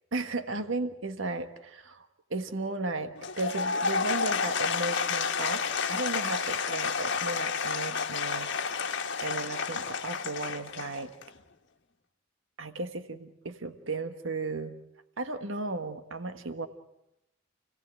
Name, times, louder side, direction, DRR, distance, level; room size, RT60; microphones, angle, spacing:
voice 1, 0.1-5.6 5.9-8.5 9.2-11.1 12.6-14.8 15.2-16.7, right 3 dB, 70° right, 8 dB, 1.5 m, -35 dB
Applause / Crowd, 3.2-11.4, left 5 dB, 60° left, 1.4 m, -30 dB
29.0 x 17.5 x 9.0 m, 0.86 s
head